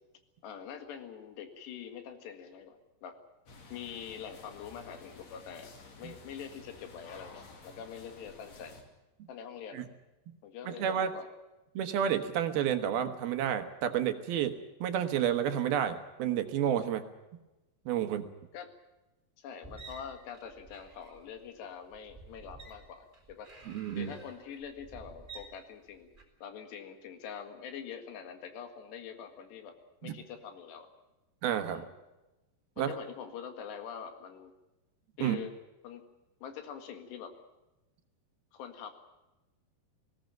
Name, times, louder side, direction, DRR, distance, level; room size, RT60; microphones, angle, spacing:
voice 1, 0.4-3.2 3.7-5.7 6.0-8.8 9.3-9.8 10.4-11.3 18.5-18.7 19.4-23.5 24.0-26.1 26.4-29.7 30.0-30.9 31.7-31.9 32.8-34.5 35.2-35.5 35.8-36.0 36.4-37.3 38.5-38.9, left 7 dB, 80° left, 7 dB, 4.0 m, -44 dB
sound 1, 3.5-8.8, left 3 dB, 45° left, 3.3 m, -53 dB
voice 2, 10.7-11.1 11.8-17.0 17.9-18.3 23.7-24.1 30.0-30.1 31.4-31.8 32.8-32.9 35.2-35.4, right 9 dB, 70° right, 8 dB, 2.9 m, -30 dB
sound 2, 19.6-26.2, right 3 dB, 10° right, 3.6 m, -51 dB
20.0 x 17.5 x 9.0 m, 1.0 s
omnidirectional pair, 4.8 m